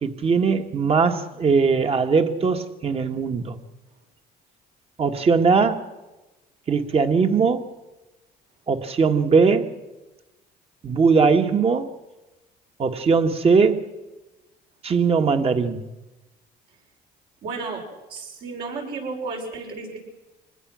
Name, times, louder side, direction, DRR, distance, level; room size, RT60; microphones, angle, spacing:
voice 1, 0.0-3.6 5.0-5.8 6.7-7.7 8.7-9.7 10.8-11.9 12.8-13.8 14.8-15.8, right 5 dB, 35° right, 1.7 m, -20 dB
voice 2, 17.4-17.8 18.1-20.0, right 4 dB, 70° right, 6.2 m, -32 dB
24.5 x 20.0 x 6.3 m
cardioid pair, 110°, 17 cm